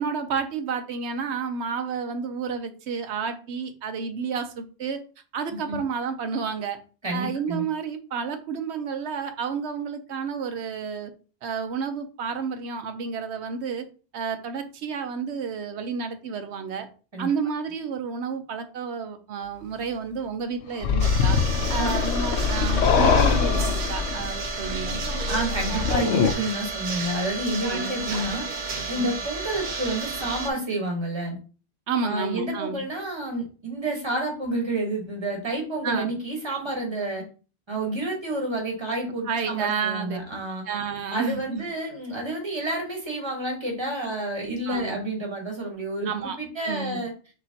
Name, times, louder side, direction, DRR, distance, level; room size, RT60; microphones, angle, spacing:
voice 1, 0.0-5.0 5.3-6.8 7.1-11.1 11.4-13.8 14.1-16.9 17.2-21.4 21.7-25.0 27.7-27.9 28.9-29.2 31.9-32.8 35.8-36.1 39.3-40.2 40.7-41.7 44.7-45.0 46.0-46.4 46.6-47.0, right 6 dB, 85° right, 8 dB, 1.0 m, -30 dB
voice 2, 7.0-7.6 17.1-17.3 21.8-21.9 25.3-28.4 28.9-31.4 32.0-37.2 37.7-40.6 41.1-47.1, right 1 dB, 25° right, 1 dB, 1.3 m, -29 dB
sound 1, 20.8-26.3, left 6 dB, 90° left, 0.9 m, -23 dB
sound 2, 21.0-30.5, right 4 dB, 50° right, 0.7 m, -32 dB
6.2 x 2.9 x 2.8 m, 0.36 s
omnidirectional pair, 1.1 m